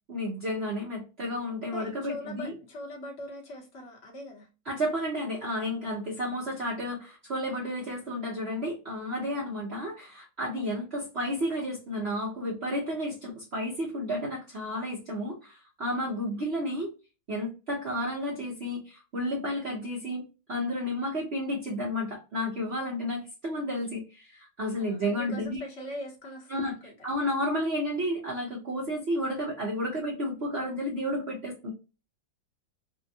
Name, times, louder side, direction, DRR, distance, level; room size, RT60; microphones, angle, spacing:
voice 1, 0.1-2.5 4.6-16.9 17.3-20.2 20.5-25.6 26.5-26.7 27.0-31.7, equal, 45° right, 1.0 m, -32 dB
voice 2, 1.6-4.5 9.3-9.5 10.7-10.8 15.9-16.4 23.1-23.3 24.8-27.1, left 1 dB, 45° left, 1.1 m, -42 dB
3.4 x 2.2 x 2.6 m
omnidirectional pair, 1.9 m